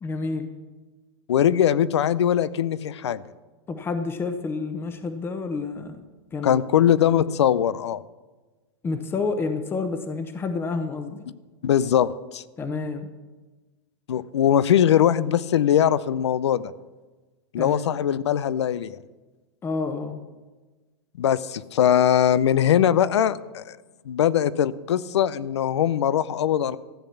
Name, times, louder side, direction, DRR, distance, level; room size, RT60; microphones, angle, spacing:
voice 1, 0.0-0.5 3.7-6.0 6.3-6.9 8.8-11.2 12.6-13.1 17.6-17.8 19.6-20.2, left 4 dB, 15° left, 9 dB, 0.9 m, -29 dB
voice 2, 1.3-3.2 6.4-8.0 11.6-12.4 14.1-16.7 17.5-19.0 21.2-23.8 24.1-26.8, left 10 dB, 90° left, 19 dB, 0.6 m, -21 dB
14.0 x 8.1 x 7.0 m, 1.3 s
hypercardioid pair, 135°, 14 cm